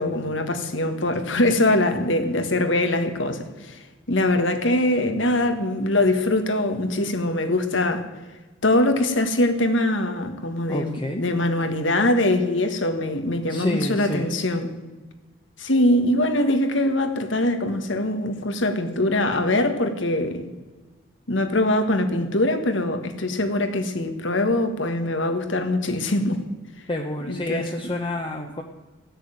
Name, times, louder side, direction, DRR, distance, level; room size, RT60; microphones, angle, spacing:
voice 1, 0.0-3.8 4.1-8.0 8.6-14.7 15.6-20.5 21.3-26.4 27.3-27.6, left 1 dB, 75° left, 7 dB, 1.6 m, -22 dB
voice 2, 10.7-11.2 13.5-14.3 26.9-28.6, left 1 dB, 25° left, 2 dB, 0.9 m, -28 dB
16.0 x 6.7 x 9.2 m, 1.2 s
head